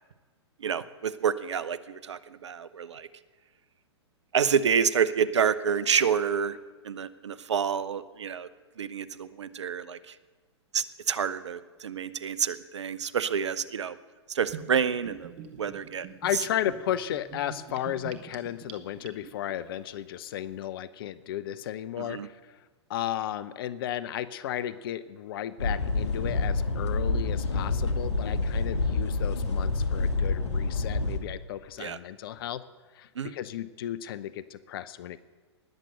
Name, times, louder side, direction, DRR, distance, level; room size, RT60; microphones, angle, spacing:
voice 1, 0.6-3.1 4.3-6.6 6.8-8.5 8.8-10.1 10.7-14.0 14.3-16.1 22.0-22.3 31.8-32.0 33.2-33.3, right 7 dB, 75° right, 17 dB, 0.8 m, -28 dB
Gurgling / Bathtub (filling or washing), 14.5-19.5, right 8 dB, 40° right, 1.5 m, -44 dB
voice 2, 16.2-22.6 22.9-32.6 32.9-35.2, left 11 dB, 55° left, 16 dB, 0.6 m, -34 dB
sound 1, 25.6-31.2, left 3 dB, 75° left, 1.8 m, -27 dB
19.5 x 7.5 x 6.7 m, 1.4 s
figure-of-eight pair, 110°, 15 cm